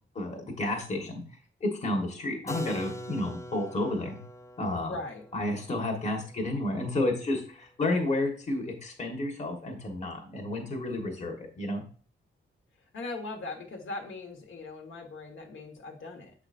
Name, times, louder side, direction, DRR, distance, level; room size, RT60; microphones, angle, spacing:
voice 1, 0.1-1.2 1.6-4.2 4.6-5.0 5.3-11.8, left 2 dB, 35° left, 1 dB, 1.3 m, -31 dB
Keyboard (musical), 2.5-8.1, equal, 15° left, 0.5 m, -44 dB
voice 2, 4.9-5.2 12.9-16.3, left 3 dB, 70° left, 1 dB, 1.4 m, -39 dB
7.7 x 4.9 x 2.5 m, 0.41 s
wide cardioid pair, 175°, 21 cm